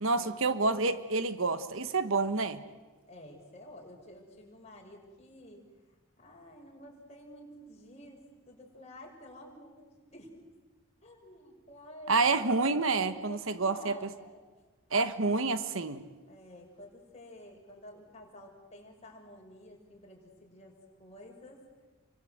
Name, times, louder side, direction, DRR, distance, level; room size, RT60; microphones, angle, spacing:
voice 1, 0.0-2.6 12.1-14.0 14.9-16.0, right 3 dB, 65° right, 11 dB, 1.3 m, -28 dB
voice 2, 3.1-5.7 6.2-8.2 8.5-10.3 11.0-12.3 12.6-14.5 15.0-15.1 16.3-21.6, left 1 dB, 30° left, 0 dB, 5.9 m, -51 dB
30.0 x 24.0 x 7.9 m, 1.3 s
head